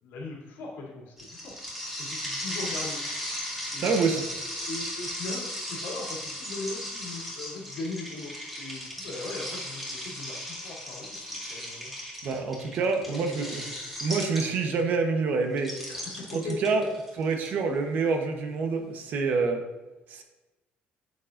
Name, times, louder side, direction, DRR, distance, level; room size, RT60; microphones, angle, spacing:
voice 1, 0.0-1.6 2.0-3.0 3.7-4.0 4.7-11.9 12.8-13.5 15.9-16.9, left 3 dB, 90° left, -4 dB, 2.7 m, -39 dB
sound 1, 1.2-14.8 15.6-17.5, equal, 5° right, 1.9 m, -36 dB
voice 2, 3.8-4.3 12.2-13.6 14.0-15.7 16.3-16.9 17.2-19.6 20.1-20.2, right 4 dB, 50° right, 4 dB, 1.0 m, -27 dB
9.3 x 7.0 x 2.6 m, 1.1 s
cardioid pair, 165°, 4 cm